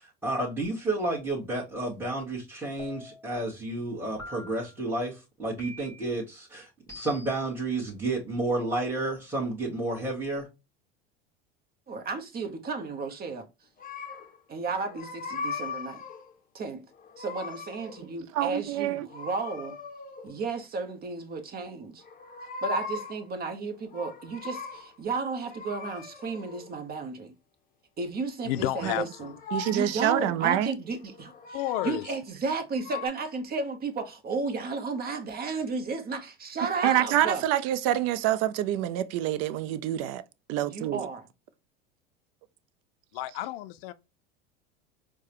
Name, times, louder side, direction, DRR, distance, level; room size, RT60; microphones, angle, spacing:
voice 1, 0.0-10.5, right 2 dB, 5° right, 1.4 m, -31 dB
sound 1, 2.8-3.4 4.2-4.8 5.6-6.2 6.9-7.5, left 1 dB, 10° left, 1.7 m, -45 dB
voice 2, 11.9-13.5 14.5-16.0 16.5-16.8 17.2-19.8 20.2-22.0 22.6-27.3 28.0-29.3 29.7-31.6 31.8-37.4 40.6-41.3, right 4 dB, 30° right, 0.9 m, -33 dB
sound 2, 13.8-14.4 14.7-16.3 16.9-18.1 19.1-20.4 22.0-23.3 23.7-25.0 25.4-26.7 28.6-30.2 31.0-32.2 32.7-33.1, left 4 dB, 30° left, 0.7 m, -39 dB
voice 3, 18.3-19.1 28.8-28.9 29.5-30.7 36.8-40.2 40.5-41.0, right 12 dB, 55° right, 0.5 m, -26 dB
voice 4, 28.5-29.3 31.5-32.0 43.1-43.9, left 15 dB, 70° left, 0.5 m, -31 dB
4.6 x 2.2 x 2.9 m
hypercardioid pair, 95°, 30 cm